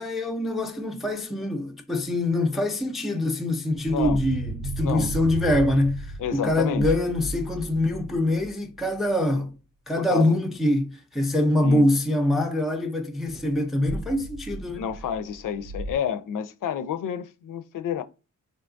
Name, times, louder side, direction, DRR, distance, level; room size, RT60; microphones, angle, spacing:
voice 1, 0.0-9.6 9.9-14.9, left 1 dB, ahead, 0.4 m, -24 dB
sound 1, 3.8-8.9 13.3-16.0, right 2 dB, 75° right, 0.5 m, -35 dB
voice 2, 3.9-4.2 4.8-5.1 6.2-6.9 10.0-10.3 11.6-11.8 14.8-18.0, left 8 dB, 80° left, 0.5 m, -29 dB
3.4 x 2.7 x 2.5 m
wide cardioid pair, 115°, 32 cm